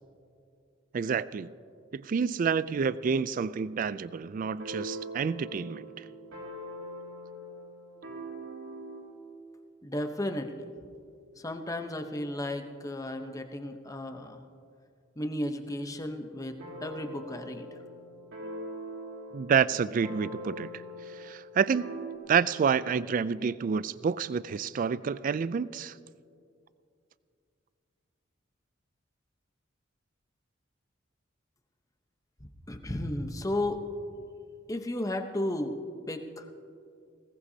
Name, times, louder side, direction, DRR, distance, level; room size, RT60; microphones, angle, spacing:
voice 1, 0.9-1.5 1.9-5.9 19.3-20.7 21.2-21.9 22.3-25.9, right 6 dB, 45° right, 17 dB, 0.3 m, -28 dB
sound 1, 4.4-9.1 16.6-22.2, right 1 dB, 75° right, 3.4 m, -42 dB
voice 2, 9.8-10.6 11.4-14.4 15.2-17.7 32.7-33.8 34.7-35.8 36.0-36.5, left 1 dB, 15° left, 6 dB, 0.9 m, -34 dB
20.5 x 17.5 x 2.8 m, 2.4 s
head